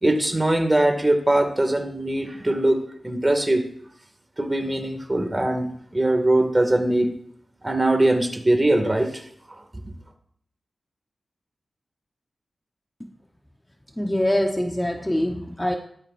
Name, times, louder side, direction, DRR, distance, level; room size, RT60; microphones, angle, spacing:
voice 1, 0.0-2.8 3.0-3.6 4.4-5.7 5.9-7.1 7.6-9.2 9.5-9.6, right 1 dB, 25° right, 5 dB, 2.1 m, -21 dB
voice 2, 14.0-15.7, left 1 dB, 15° left, 2 dB, 1.0 m, -24 dB
15.5 x 12.5 x 2.6 m, 0.66 s
cardioid pair, 65°, 0 cm